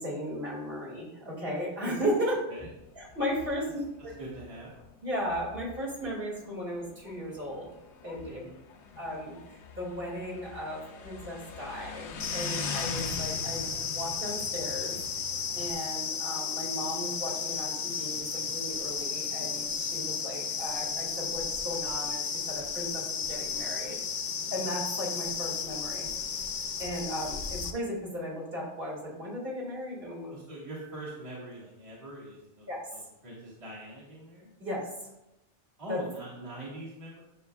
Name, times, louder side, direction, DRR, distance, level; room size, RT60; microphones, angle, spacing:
voice 1, 0.0-2.4 3.0-3.7 4.0-4.1 5.0-7.7 8.0-8.4 9.0-15.3 15.5-24.0 24.5-26.1 26.8-30.3 32.7-32.8 34.6-34.9 35.9-36.0, equal, 50° right, -5 dB, 2.4 m, -36 dB
Motorcycle, 2.8-15.7, left 4 dB, 85° left, 1.0 m, -43 dB
voice 2, 4.2-4.7 8.3-8.6 30.3-34.5 35.8-37.2, right 1 dB, 30° right, -6 dB, 1.8 m, -43 dB
sound 1, 12.2-27.7, left 6 dB, 50° left, 0.6 m, -34 dB
9.7 x 6.2 x 2.3 m, 0.89 s
omnidirectional pair, 1.1 m